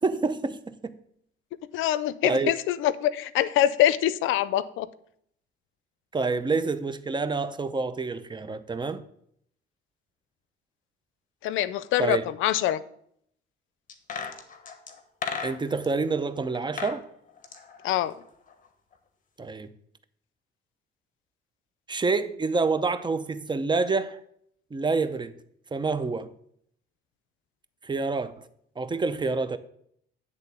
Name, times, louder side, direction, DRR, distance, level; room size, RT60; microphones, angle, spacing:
voice 1, 0.0-1.0 2.2-2.5 6.1-9.1 12.0-12.2 15.4-17.0 19.4-19.7 21.9-24.2 24.7-25.3 25.7-26.3 27.8-28.5 28.8-29.6, right 4 dB, 25° right, 0.6 m, -27 dB
voice 2, 1.7-4.9 11.4-12.8 17.8-18.1, left 12 dB, 90° left, 0.5 m, -24 dB
sound 1, 13.9-15.9 16.5-17.0 17.3-18.7 18.9-19.0, left 6 dB, 40° left, 1.2 m, -36 dB
10.5 x 3.6 x 6.7 m
cardioid pair, 90°, 20 cm